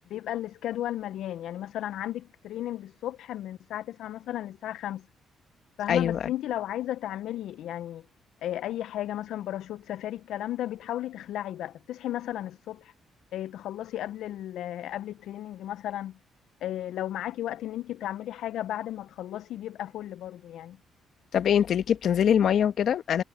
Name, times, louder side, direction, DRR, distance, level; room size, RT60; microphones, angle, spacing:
voice 1, 0.1-5.1 5.8-8.0 8.4-12.9 13.3-16.2 16.6-20.8, left 12 dB, 80° left, 0.4 m, -34 dB
voice 2, 5.9-6.3 21.3-23.2, left 9 dB, 65° left, 1.1 m, -23 dB
cardioid pair, 90°, 0 cm